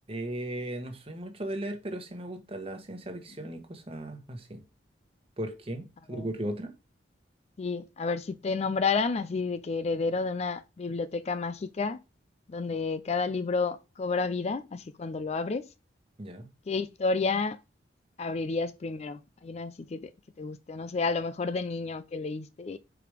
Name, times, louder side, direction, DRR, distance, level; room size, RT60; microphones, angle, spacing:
voice 1, 0.1-4.6 5.4-6.7 16.2-16.5, right 1 dB, 30° right, 1.2 m, -37 dB
voice 2, 7.6-12.0 12.5-15.6 16.7-17.6 18.2-20.0 20.4-22.8, left 4 dB, 35° left, 0.4 m, -30 dB
4.9 x 4.8 x 4.9 m
head